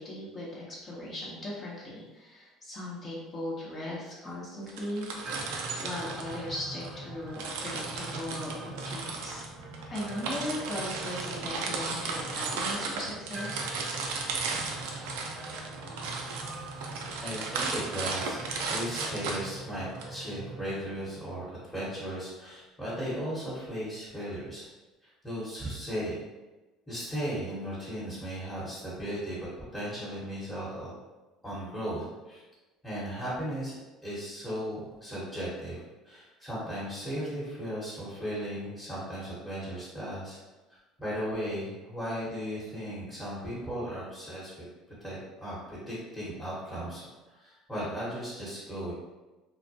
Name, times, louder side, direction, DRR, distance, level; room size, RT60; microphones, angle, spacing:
voice 1, 0.0-5.1 5.8-9.4 9.9-13.7, left 1 dB, 35° left, -6 dB, 0.8 m, -38 dB
sound 1, 4.7-6.9 7.3-20.0, right 4 dB, 80° right, 0.4 m, -35 dB
sound 2, 5.3-21.4, right 2 dB, 30° right, 0.6 m, -43 dB
voice 2, 17.2-24.6 25.0-26.2 26.9-30.9 31.4-32.4 32.8-33.7 34.0-40.4 41.0-44.7 45.0-48.9, equal, 5° left, -10 dB, 1.0 m, -36 dB
2.2 x 2.1 x 2.7 m, 1.1 s
supercardioid pair, 90°, 0 cm